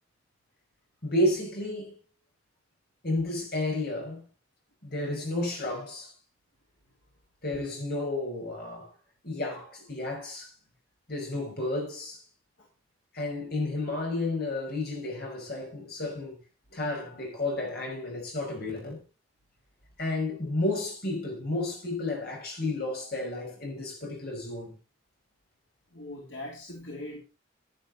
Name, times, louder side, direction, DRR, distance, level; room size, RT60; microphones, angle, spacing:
voice 1, 1.0-1.9 3.0-4.2 4.8-6.1 7.4-8.9 9.2-10.5 11.1-12.2 13.1-16.4 16.7-19.0 20.0-24.7, left 2 dB, 50° left, 5.5 m, -31 dB
voice 2, 25.9-27.2, left 1 dB, 75° left, 3.0 m, -40 dB
11.0 x 10.5 x 4.0 m
head